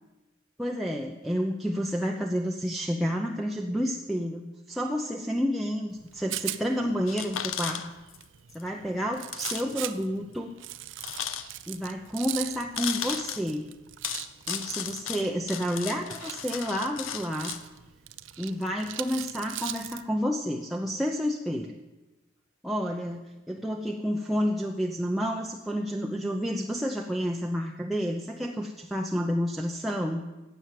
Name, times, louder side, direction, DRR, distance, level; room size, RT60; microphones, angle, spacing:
voice 1, 0.6-7.8 8.5-10.5 11.7-13.7 14.5-17.5 18.4-21.8 22.6-30.2, equal, ahead, -1 dB, 0.7 m, -30 dB
Rattle, 5.9-20.0, right 14 dB, 70° right, 0.6 m, -41 dB
sound 1, 7.1-8.2 8.5-8.6 9.3-9.7 9.9-10.0 11.0-11.8 12.8-13.4 14.0-17.6, left 9 dB, 80° left, 0.8 m, -35 dB
12.5 x 8.0 x 9.5 m, 1.1 s
head